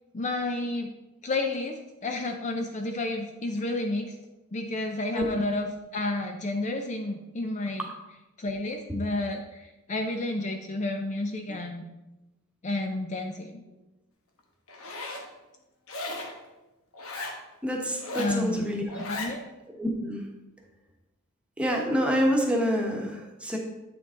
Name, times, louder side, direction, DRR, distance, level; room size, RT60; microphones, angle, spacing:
voice 1, 0.1-0.9 1.2-4.1 4.5-7.9 8.4-11.8 12.6-13.6 18.2-18.7 19.1-19.4, left 2 dB, 35° left, 4 dB, 0.5 m, -31 dB
Zipper (clothing), 14.7-15.3 15.9-16.4 16.9-17.4 17.9-18.4 18.9-19.3, left 2 dB, 80° left, 1.2 m, -36 dB
voice 2, 17.6-18.8 19.8-20.2 21.6-23.6, equal, 5° right, -1 dB, 1.1 m, -27 dB
8.4 x 5.9 x 3.7 m, 1.0 s
head